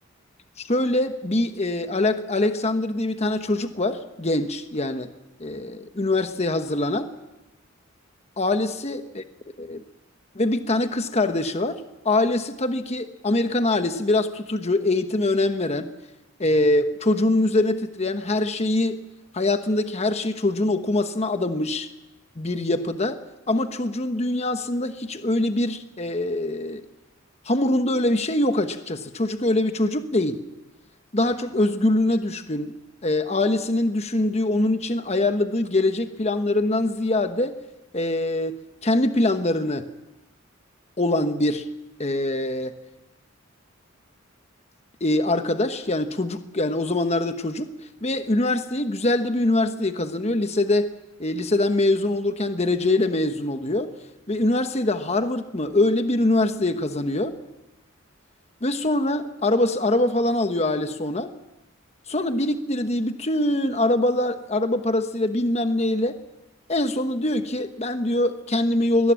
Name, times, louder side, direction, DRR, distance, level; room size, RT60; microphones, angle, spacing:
voice 1, 0.6-5.1 5.4-7.1 8.4-9.2 9.6-9.8 10.3-15.9 16.4-19.0 19.3-21.9 22.4-23.2 23.5-26.8 27.4-30.4 31.1-32.7 33.0-37.6 37.9-39.9 41.0-41.7 42.0-42.8 45.0-47.7 48.0-50.9 51.2-53.9 54.3-57.4 58.6-61.3 62.1-66.2 66.7-69.1, left 2 dB, 30° left, 8 dB, 1.1 m, -23 dB
22.5 x 19.0 x 7.6 m, 0.96 s
head